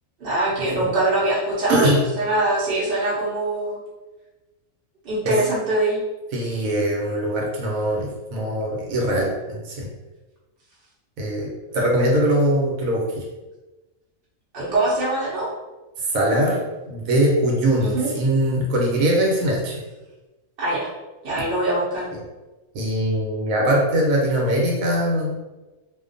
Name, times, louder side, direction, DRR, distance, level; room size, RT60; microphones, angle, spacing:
voice 1, 0.2-3.8 5.0-6.0 14.5-15.5 17.8-18.1 20.6-20.9 21.2-22.1, right 2 dB, 55° right, -7 dB, 0.7 m, -23 dB
voice 2, 6.3-9.9 11.2-13.2 16.0-19.8 22.7-25.4, right 1 dB, 80° right, -2 dB, 1.0 m, -22 dB
2.4 x 2.2 x 2.4 m, 1.1 s
omnidirectional pair, 1.4 m